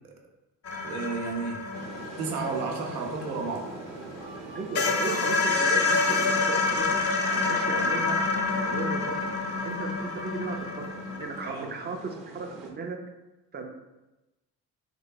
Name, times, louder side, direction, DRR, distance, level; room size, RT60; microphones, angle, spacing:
sound 1, 0.7-4.0 4.4-4.5 4.8-11.5, left 3 dB, 35° left, 0.5 m, -27 dB
voice 1, 0.8-1.6 2.2-3.7 11.4-11.7, right 4 dB, 85° right, 1 dB, 0.6 m, -32 dB
sound 2, 1.7-12.7, right 3 dB, 45° right, 0.8 m, -44 dB
Wind instrument woodwind instrument, 4.1-10.8, right 2 dB, 80° left, 0.7 m, -45 dB
voice 2, 4.5-8.2 8.6-9.4 9.6-13.0 13.5-13.7, right 3 dB, 25° right, 4 dB, 0.4 m, -36 dB
3.2 x 2.2 x 3.3 m, 1.0 s
hypercardioid pair, 50°, 45 cm